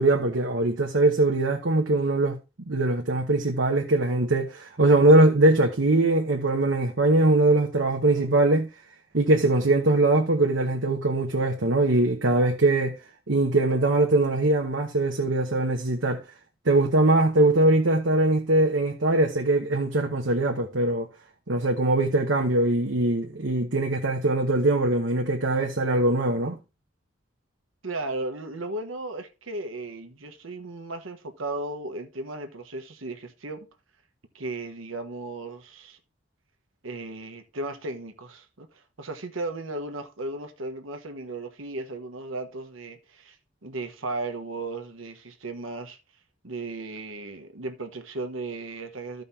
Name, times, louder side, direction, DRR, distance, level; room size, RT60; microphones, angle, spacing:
voice 1, 0.0-2.4 2.7-8.7 9.1-13.0 13.3-16.2 16.6-21.1 21.5-26.6, right 2 dB, 70° right, 1.0 m, -22 dB
voice 2, 27.8-33.7 34.3-36.0 36.8-43.4 43.6-46.0 46.4-49.2, right 2 dB, 90° right, 1.3 m, -35 dB
14.5 x 5.3 x 2.8 m
head